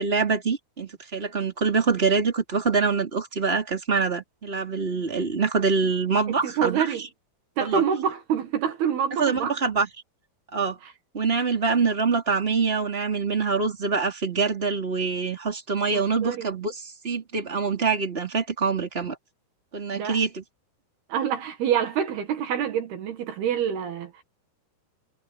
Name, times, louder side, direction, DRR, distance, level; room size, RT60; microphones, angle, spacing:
voice 1, 0.0-7.1 7.6-7.8 9.2-9.9 10.5-10.8 11.1-19.2 19.7-20.4, right 4 dB, 15° right, 4.2 m, -25 dB
voice 2, 6.3-7.0 7.6-9.5 15.9-16.5 19.9-20.2 21.1-24.1, right 8 dB, 70° right, 3.7 m, -26 dB
omnidirectional pair, 4.8 m